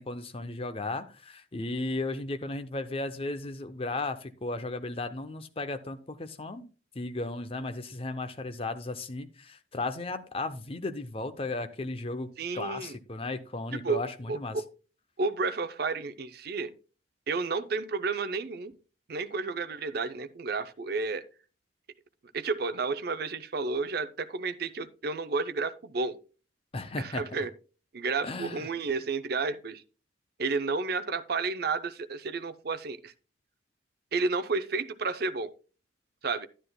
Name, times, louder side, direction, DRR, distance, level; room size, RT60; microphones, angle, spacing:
voice 1, 0.0-6.6 6.9-14.6 26.7-27.2 28.2-28.7, left 2 dB, 30° left, 0.6 m, -35 dB
voice 2, 12.4-13.0 13.7-14.0 14.3-14.6 15.2-16.7 17.3-18.7 19.1-21.2 22.3-26.2 27.0-27.5 27.9-29.8 30.4-33.1 34.1-35.5 36.2-36.5, right 4 dB, 55° right, 0.6 m, -31 dB
11.0 x 10.0 x 2.2 m
head